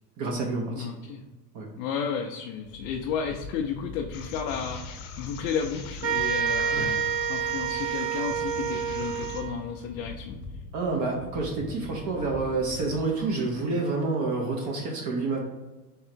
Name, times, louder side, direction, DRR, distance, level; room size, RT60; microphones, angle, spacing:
voice 1, 0.2-0.9 1.5-1.7 6.7-6.9 10.7-15.4, right 3 dB, 35° right, 0 dB, 0.9 m, -28 dB
voice 2, 0.8-1.2 1.8-10.4, left 6 dB, 40° left, 2 dB, 0.5 m, -33 dB
sound 1, 2.6-13.8, left 3 dB, 25° left, 0.9 m, -42 dB
sound 2, 4.1-9.4, left 7 dB, 60° left, 0.9 m, -45 dB
sound 3, 6.0-9.7, right 7 dB, 75° right, 1.1 m, -28 dB
3.7 x 3.2 x 4.4 m, 1.2 s
hypercardioid pair, 115°, 49 cm